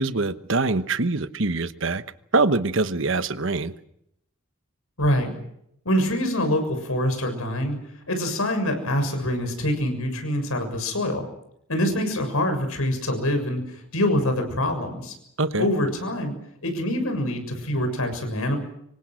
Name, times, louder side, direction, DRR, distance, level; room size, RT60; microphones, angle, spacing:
voice 1, 0.0-2.0 2.3-3.7 15.4-15.7, right 3 dB, 60° right, 12 dB, 1.1 m, -24 dB
voice 2, 5.0-5.3 5.8-7.8 8.1-11.3 11.7-15.1 15.6-16.3 16.6-18.6, left 1 dB, 85° left, 6 dB, 6.8 m, -25 dB
26.5 x 24.0 x 6.4 m, 0.76 s
head